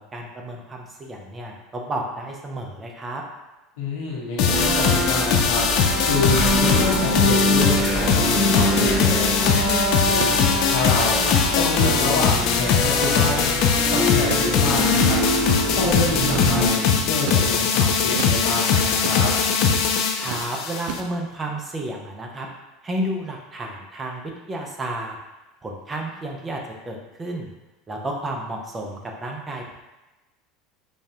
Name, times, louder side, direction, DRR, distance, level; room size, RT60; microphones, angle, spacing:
voice 1, 0.1-3.2 20.2-22.5 22.8-24.2 24.5-25.2 25.6-26.6 26.9-27.5 27.9-29.7, right 1 dB, 20° right, 1 dB, 0.6 m, -31 dB
voice 2, 3.8-9.5 10.0-13.5 13.9-15.2 15.7-19.3, left 3 dB, 85° left, -4 dB, 1.2 m, -27 dB
sound 1, 4.4-21.0, left 6 dB, 60° left, 0.5 m, -21 dB
sound 2, 4.5-16.7, equal, 5° right, 1.4 m, -24 dB
sound 3, 8.8-9.0 9.4-9.6 10.2-10.4 10.9-11.0 11.5-12.1 13.0-13.4 14.3-14.5 15.5-15.6 16.3-16.5 17.3-17.5 18.2-18.4 19.0-19.2 19.7-19.9 20.2-20.5 20.9-21.3, right 7 dB, 75° right, 0.4 m, -32 dB
5.0 x 2.4 x 2.8 m, 1.1 s
supercardioid pair, 125°, 0 cm